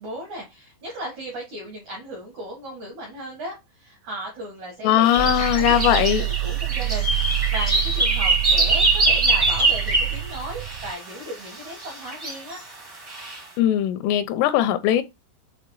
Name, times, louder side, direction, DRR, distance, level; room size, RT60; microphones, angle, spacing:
voice 1, 0.0-12.6, right 1 dB, 70° right, 1.8 m, -36 dB
voice 2, 4.8-6.2 13.6-15.0, left 12 dB, 85° left, 3.2 m, -19 dB
sound 1, 5.0-10.9 11.8-12.6 13.1-13.4, right 2 dB, 30° right, 0.4 m, -23 dB
sound 2, 5.2-10.9, right 23 dB, 85° right, 3.2 m, -27 dB
7.8 x 3.1 x 4.7 m
omnidirectional pair, 5.8 m